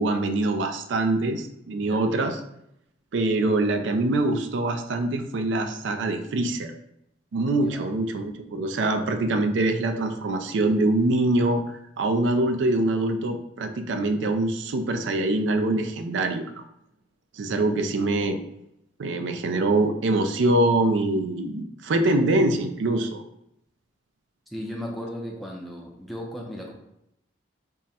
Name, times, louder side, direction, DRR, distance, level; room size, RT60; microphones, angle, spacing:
voice 1, 0.0-2.3 3.1-6.7 7.3-11.6 12.0-16.7 17.4-18.4 19.0-23.2, right 2 dB, 75° right, 6 dB, 0.4 m, -24 dB
voice 2, 24.5-26.7, equal, ahead, -2 dB, 0.4 m, -36 dB
3.6 x 2.1 x 4.1 m, 0.79 s
head